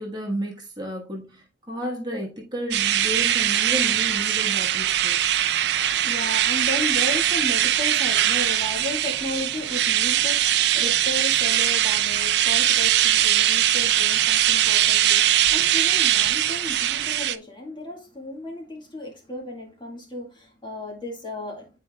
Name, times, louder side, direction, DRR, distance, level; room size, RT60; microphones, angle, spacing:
voice 1, 0.0-5.2, equal, 25° right, 1.4 m, -32 dB
sound 1, 2.7-17.4, right 12 dB, 65° right, 0.4 m, -21 dB
voice 2, 5.7-21.7, left 2 dB, 25° left, 1.8 m, -34 dB
9.6 x 4.5 x 2.3 m
head